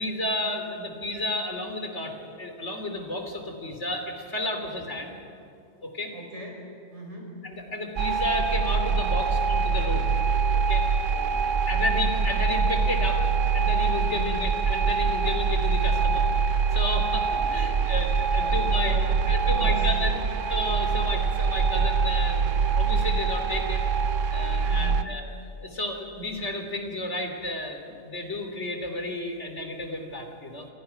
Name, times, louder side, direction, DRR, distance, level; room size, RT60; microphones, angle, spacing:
voice 1, 0.0-5.2 5.8-6.1 7.4-10.1 10.5-10.9 11.7-13.2 13.5-16.3 16.7-19.0 19.3-20.2 20.5-23.8 24.3-25.3 25.6-30.7, left 1 dB, 65° left, 4 dB, 3.4 m, -32 dB
voice 2, 6.1-7.4 11.1-12.0 14.1-14.4 17.5-19.9 20.2-20.3 24.6-25.1, equal, 65° right, 0 dB, 5.7 m, -41 dB
sound 1, 8.0-25.0, right 5 dB, 80° right, 1.2 m, -24 dB
29.5 x 25.0 x 5.8 m, 2.6 s
omnidirectional pair, 1.3 m